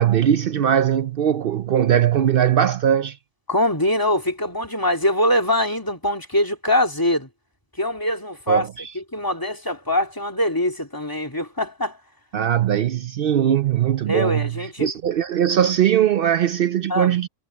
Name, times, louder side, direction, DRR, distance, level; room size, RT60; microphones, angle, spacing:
voice 1, 0.0-3.2 8.5-8.9 12.3-14.5 14.8-17.3, right 10 dB, 85° right, 0.5 m, -20 dB
voice 2, 3.5-7.3 7.8-8.7 8.9-12.0 14.1-14.9 16.9-17.1, left 1 dB, 15° left, 2.4 m, -23 dB
omnidirectional pair, 1.6 m